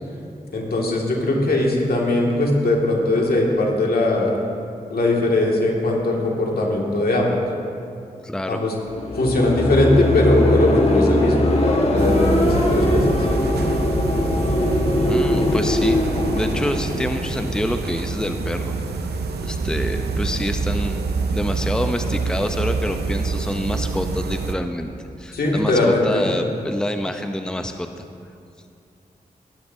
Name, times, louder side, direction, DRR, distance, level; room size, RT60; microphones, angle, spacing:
voice 1, 0.5-4.3 4.9-7.4 8.5-8.7 9.2-13.2 25.3-26.2, left 2 dB, 70° left, -2 dB, 2.2 m, -20 dB
voice 2, 8.2-8.6 15.0-16.0 16.3-18.7 19.4-21.1 21.3-24.9 25.2-27.9, left 1 dB, 5° left, 6 dB, 0.7 m, -27 dB
sound 1, 8.9-17.9, left 1 dB, 40° left, 1.5 m, -21 dB
sound 2, 12.0-24.5, right 4 dB, 90° right, 0.7 m, -26 dB
17.5 x 11.0 x 2.8 m, 2.5 s
cardioid pair, 45°, 16 cm